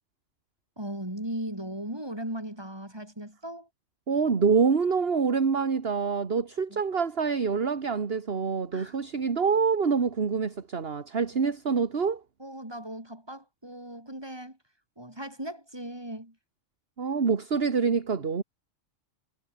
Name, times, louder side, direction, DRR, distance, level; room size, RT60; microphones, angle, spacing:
voice 1, 0.8-3.7 6.7-6.8 8.7-9.0 11.4-11.5 12.4-14.6 15.0-16.4, right 1 dB, 20° right, 5.9 m, -38 dB
voice 2, 4.1-12.2 17.0-18.4, right 5 dB, 50° right, 1.8 m, -26 dB
omnidirectional pair, 1.3 m